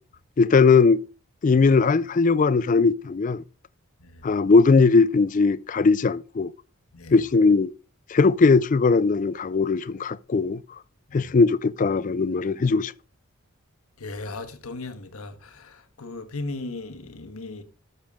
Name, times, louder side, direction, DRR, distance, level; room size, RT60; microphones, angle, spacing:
voice 1, 0.4-1.0 1.4-3.4 4.2-6.5 7.1-7.7 8.1-10.6 11.1-12.9, left 4 dB, 35° left, 0.3 m, -19 dB
voice 2, 14.0-17.6, left 2 dB, 80° left, 1.3 m, -37 dB
13.0 x 6.7 x 3.6 m
head